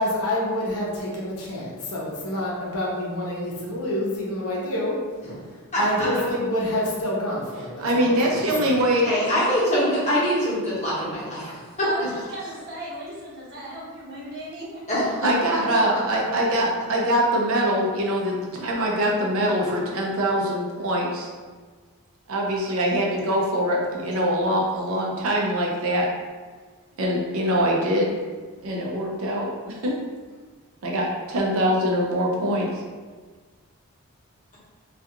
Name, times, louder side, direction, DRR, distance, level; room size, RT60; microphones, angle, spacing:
voice 1, 0.0-5.0 5.8-8.3 8.6-8.7, left 1 dB, 85° left, -4 dB, 0.7 m, -27 dB
voice 2, 5.7-6.1 8.4-8.5 9.0-11.5 14.9-15.3, equal, 30° left, -9 dB, 0.9 m, -24 dB
voice 3, 7.8-9.1 15.2-21.3 22.3-26.1 27.0-28.2 28.6-29.9 30.8-32.7, equal, 70° right, -2 dB, 0.5 m, -23 dB
voice 4, 11.8-15.4, right 1 dB, 45° right, -7 dB, 0.8 m, -37 dB
2.3 x 2.3 x 2.8 m, 1.4 s
head